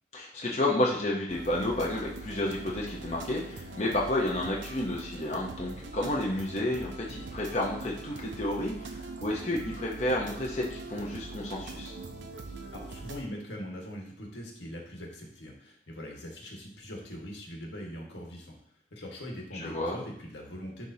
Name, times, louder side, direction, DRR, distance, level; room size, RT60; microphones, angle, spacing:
voice 1, 0.1-11.9 19.5-20.0, left 1 dB, 35° left, -3 dB, 0.8 m, -31 dB
sound 1, 1.3-13.2, right 3 dB, 85° right, 0.7 m, -42 dB
voice 2, 12.7-18.5 18.9-20.9, equal, 80° left, -1 dB, 1.6 m, -42 dB
10.0 x 3.6 x 2.8 m, 0.67 s
head